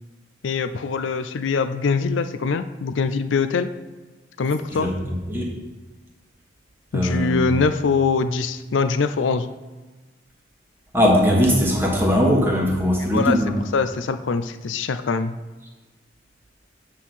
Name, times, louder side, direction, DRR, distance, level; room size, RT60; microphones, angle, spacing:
voice 1, 0.4-3.7 4.4-4.9 6.9-9.5 13.0-13.4 13.7-15.3, left 4 dB, 75° left, 11 dB, 0.5 m, -23 dB
voice 2, 6.9-7.4 10.9-13.5, equal, 10° right, -2 dB, 1.3 m, -19 dB
8.4 x 3.8 x 6.1 m, 1.3 s
head